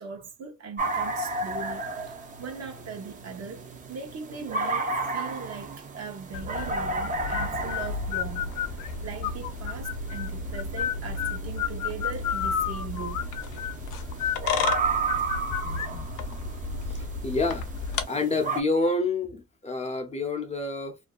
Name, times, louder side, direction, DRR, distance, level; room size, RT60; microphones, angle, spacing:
voice 1, 0.0-13.3, right 5 dB, 55° right, 0.9 m, -40 dB
sound 1, 0.8-18.6, right 3 dB, 25° right, 0.5 m, -34 dB
sound 2, 6.3-18.0, left 6 dB, 80° left, 0.6 m, -31 dB
voice 2, 16.9-17.6 18.1-21.0, left 3 dB, 20° left, 0.5 m, -28 dB
2.5 x 2.1 x 2.3 m
cardioid pair, 90°, 30 cm